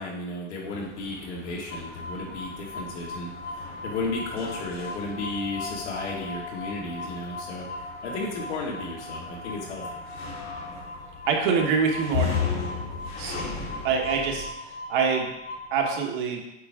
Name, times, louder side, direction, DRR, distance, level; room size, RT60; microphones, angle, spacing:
voice 1, 0.0-7.7 8.0-9.8, left 2 dB, 70° left, -2 dB, 2.3 m, -34 dB
sound 1, 0.6-14.5, left 6 dB, 55° left, 2.2 m, -37 dB
sound 2, 1.7-15.9, left 2 dB, 20° left, 0.3 m, -39 dB
voice 2, 11.2-12.4 13.2-13.6 13.8-15.3 15.7-16.4, right 5 dB, 45° right, 1 dB, 1.2 m, -25 dB
8.1 x 4.5 x 3.6 m, 0.91 s
supercardioid pair, 165°, 36 cm